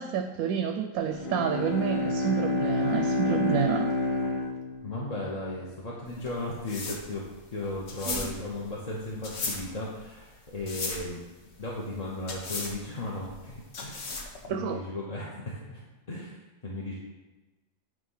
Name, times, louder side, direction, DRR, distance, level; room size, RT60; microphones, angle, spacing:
voice 1, 0.0-3.9 8.1-8.2 14.5-14.8, right 8 dB, 85° right, 6 dB, 1.0 m, -29 dB
Bowed string instrument, 1.0-5.4, left 2 dB, 75° left, 1.3 m, -29 dB
voice 2, 4.8-11.2 11.6-14.2 14.5-15.8 16.1-16.4 16.6-16.9, left 2 dB, 30° left, -5 dB, 0.9 m, -36 dB
sound 1, 6.1-14.5, left 3 dB, 55° left, 1.2 m, -37 dB
9.1 x 3.4 x 5.5 m, 1.1 s
omnidirectional pair, 1.5 m